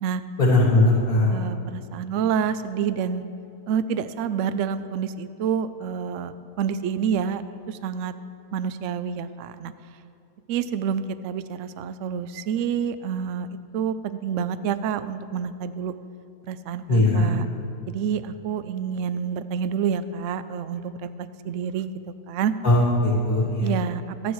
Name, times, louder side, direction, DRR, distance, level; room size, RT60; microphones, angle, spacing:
voice 1, 0.4-1.3 16.9-17.3 22.6-23.7, left 2 dB, 65° left, -4 dB, 2.5 m, -19 dB
voice 2, 1.3-3.2 3.7-8.1 8.5-9.7 10.5-13.5 13.7-15.9 16.5-17.5 17.9-21.9 22.3-22.5 23.6-24.3, right 7 dB, 65° right, 12 dB, 0.8 m, -28 dB
26.5 x 10.0 x 3.2 m, 2.6 s
omnidirectional pair, 1.7 m